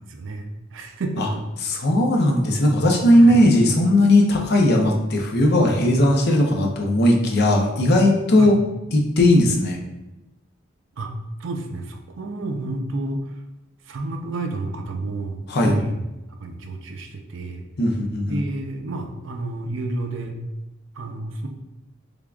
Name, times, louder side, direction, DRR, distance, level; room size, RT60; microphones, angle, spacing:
voice 1, 0.1-1.4 3.1-3.4 8.4-8.5 11.0-11.1 11.4-13.2 13.9-16.0 16.3-17.6 18.3-20.4 21.0-21.5, right 2 dB, 70° right, 4 dB, 0.5 m, -30 dB
voice 2, 1.6-8.5 8.9-9.8 15.5-15.7 17.8-18.4, left 1 dB, 55° left, 1 dB, 0.6 m, -17 dB
3.5 x 3.5 x 2.3 m, 0.99 s
head